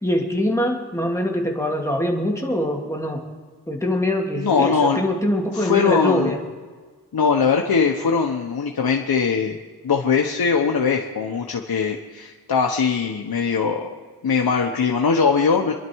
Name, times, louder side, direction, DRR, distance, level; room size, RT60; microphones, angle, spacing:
voice 1, 0.0-3.2 3.7-6.4, left 1 dB, 5° left, 0 dB, 2.7 m, -23 dB
voice 2, 4.4-5.0 5.5-6.3 7.1-9.6 9.8-13.9 14.2-15.7, left 5 dB, 70° left, 1 dB, 1.2 m, -21 dB
27.0 x 11.0 x 4.7 m, 1.5 s
wide cardioid pair, 95°, 38 cm